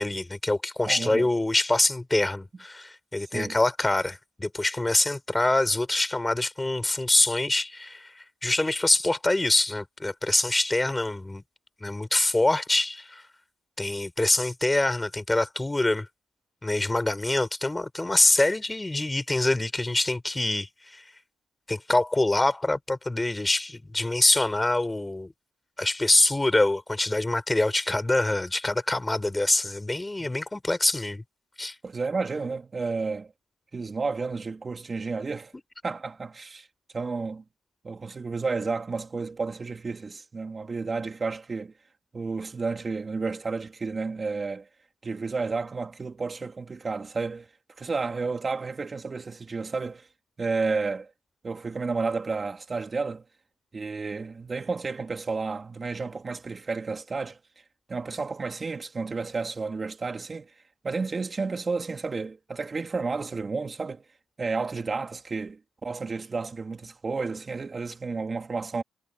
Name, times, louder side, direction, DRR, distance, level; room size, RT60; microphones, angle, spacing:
voice 1, 0.0-11.4 11.8-13.2 13.8-16.1 16.6-21.0 21.7-25.3 25.8-31.2 31.6-31.8, left 2 dB, 15° left, 5.3 m, -25 dB
voice 2, 0.8-1.3 3.3-3.6 30.2-30.3 31.8-33.3 33.7-35.5 35.8-36.7 36.9-37.4 37.8-41.7 42.1-44.7 45.0-47.5 47.8-50.1 50.4-51.1 51.4-53.2 53.7-57.4 57.9-60.5 60.8-64.0 64.4-68.8, right 4 dB, 30° right, 3.1 m, -31 dB
cardioid pair, 90°, 0 cm